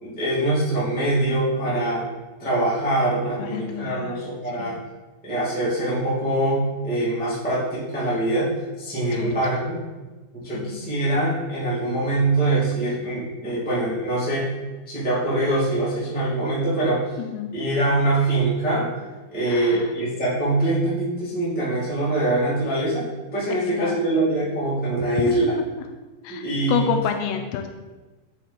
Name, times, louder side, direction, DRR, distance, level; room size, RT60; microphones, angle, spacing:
voice 1, 0.0-2.0 2.4-4.8 5.2-8.5 8.8-9.8 10.3-14.5 14.9-17.0 17.5-18.9 19.3-25.5 26.3-26.9, right 2 dB, 5° left, -9 dB, 1.1 m, -23 dB
voice 2, 3.4-4.2 4.6-4.8 9.1-9.3 10.5-10.8 17.2-17.5 19.5-19.9 23.5-24.0 25.3-25.4 26.2-27.7, left 8 dB, 85° left, 6 dB, 2.5 m, -29 dB
8.9 x 4.4 x 4.1 m, 1.2 s
omnidirectional pair, 4.7 m